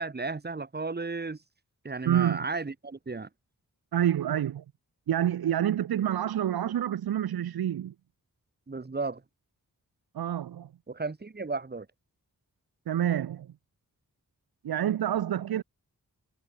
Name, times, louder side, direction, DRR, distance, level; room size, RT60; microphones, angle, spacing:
voice 1, 0.0-1.4 1.8-3.3 8.7-9.2 10.9-11.9, right 3 dB, 25° right, 0.9 m, -34 dB
voice 2, 2.1-2.4 3.9-4.6 5.1-7.9 10.1-10.7 12.9-13.5 14.6-15.6, right 10 dB, 85° right, 0.5 m, -27 dB
wide cardioid pair, 70°, 37 cm